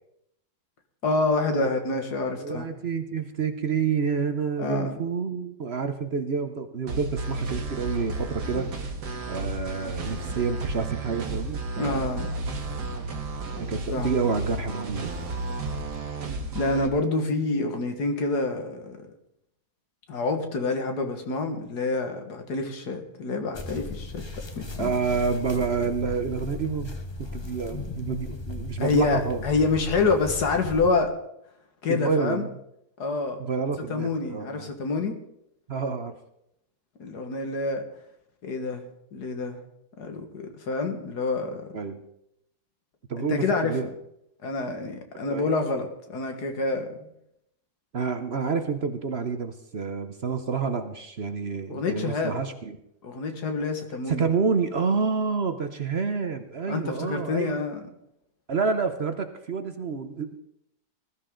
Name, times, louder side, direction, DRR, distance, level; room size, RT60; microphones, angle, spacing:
voice 1, 1.0-2.7 4.6-5.0 11.8-12.4 13.9-14.1 16.5-19.0 20.1-24.2 24.6-24.9 28.8-31.1 31.8-32.5 33.0-33.4 33.9-35.2 37.0-37.8 38.4-39.6 40.0-41.7 43.2-43.7 44.4-47.1 51.7-52.4 53.0-54.2 56.7-57.8, left 3 dB, 75° left, 5 dB, 2.2 m, -27 dB
voice 2, 2.4-8.9 9.3-12.1 13.7-15.1 24.8-29.4 31.9-32.5 33.4-34.7 35.7-36.2 41.7-42.0 43.1-43.9 45.3-45.5 47.9-52.8 54.1-57.6 58.5-60.4, right 5 dB, 50° right, 8 dB, 0.9 m, -28 dB
sound 1, 6.9-16.9, right 2 dB, 90° right, 2.2 m, -32 dB
sound 2, 23.5-30.9, left 2 dB, 20° left, 0.9 m, -37 dB
20.0 x 13.0 x 3.8 m, 0.77 s
omnidirectional pair, 1.7 m